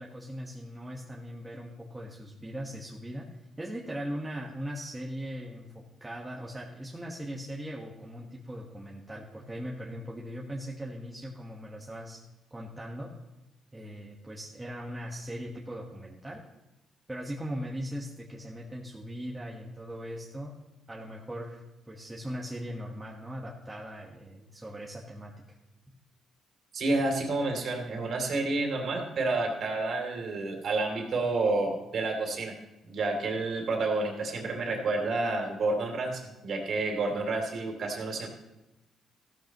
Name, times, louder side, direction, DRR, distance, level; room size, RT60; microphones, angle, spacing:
voice 1, 0.0-3.2 3.6-5.7 6.0-12.2 12.5-13.1 13.7-16.4 17.1-20.5 20.9-25.3 25.9-26.0, equal, 15° right, -3 dB, 1.5 m, -39 dB
voice 2, 26.7-32.5 32.8-38.3, right 2 dB, 60° right, 1 dB, 3.0 m, -29 dB
15.0 x 13.0 x 3.1 m, 0.99 s
cardioid pair, 90°, 0 cm